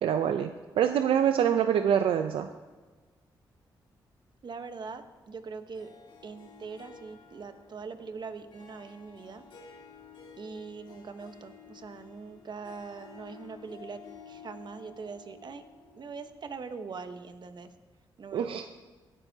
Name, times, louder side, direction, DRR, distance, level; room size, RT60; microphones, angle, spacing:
voice 1, 0.0-2.5 18.3-18.7, right 9 dB, 80° right, 8 dB, 0.5 m, -25 dB
voice 2, 4.4-5.9 6.2-9.4 10.4-15.6 15.9-17.7 18.2-18.6, right 5 dB, 55° right, 8 dB, 1.1 m, -42 dB
Harp, 5.7-16.9, left 6 dB, 65° left, 2.3 m, -52 dB
17.5 x 12.0 x 2.8 m, 1.3 s
supercardioid pair, 60°, 9 cm